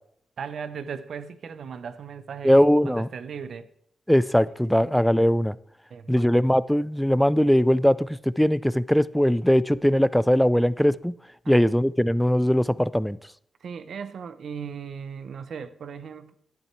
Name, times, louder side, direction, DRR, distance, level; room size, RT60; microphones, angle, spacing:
voice 1, 0.4-3.7 4.5-4.9 5.9-6.3 11.4-11.7 13.6-16.3, right 6 dB, 70° right, 0.7 m, -37 dB
voice 2, 2.4-3.1 4.1-5.5 6.1-11.1 11.5-13.2, equal, 5° left, 0.4 m, -20 dB
11.0 x 8.9 x 4.5 m
cardioid pair, 70°, 0 cm